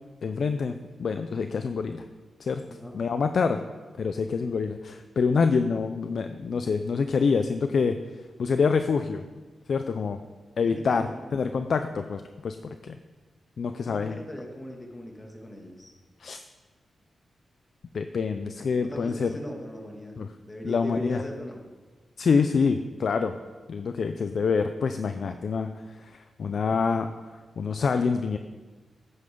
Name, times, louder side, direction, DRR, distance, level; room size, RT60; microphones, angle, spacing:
voice 1, 0.2-2.1 2.4-2.6 2.9-3.6 4.0-8.0 8.4-9.2 9.7-10.2 10.6-13.0 13.6-14.2 16.2-16.4 17.9-19.3 20.2-20.3 20.6-21.2 22.2-23.4 23.7-28.4, left 5 dB, 70° left, 8 dB, 0.5 m, -26 dB
voice 2, 10.6-11.4 13.7-15.9 18.8-20.2 20.4-21.6, left 1 dB, 20° left, 0 dB, 2.4 m, -38 dB
15.0 x 9.3 x 3.9 m, 1.3 s
cardioid pair, 85°, 0 cm